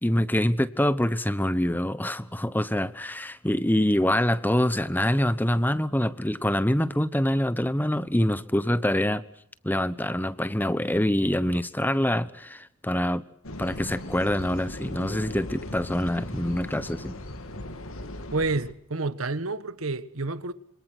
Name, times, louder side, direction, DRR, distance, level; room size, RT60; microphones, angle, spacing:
voice 1, 0.0-9.2 9.6-13.2 13.6-17.2, left 1 dB, 10° left, 1.0 m, -25 dB
sound 1, 13.4-18.7, left 1 dB, 85° left, 2.6 m, -38 dB
voice 2, 18.3-20.5, right 3 dB, 85° right, 1.4 m, -29 dB
27.5 x 25.5 x 6.3 m
head